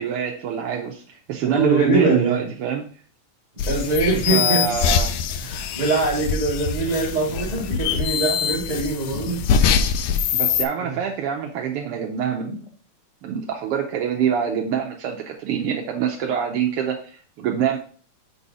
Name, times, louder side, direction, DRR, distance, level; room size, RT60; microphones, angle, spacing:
voice 1, 0.0-2.8 4.3-5.1 10.3-12.7 13.2-17.8, right 8 dB, 80° right, 2 dB, 1.3 m, -25 dB
voice 2, 1.4-2.5 3.6-4.8 5.4-9.4 10.8-11.0, right 3 dB, 45° right, -3 dB, 0.5 m, -23 dB
sound 1, 3.6-10.6, left 7 dB, 80° left, 1.5 m, -23 dB
6.2 x 4.1 x 4.8 m, 0.43 s
omnidirectional pair, 3.3 m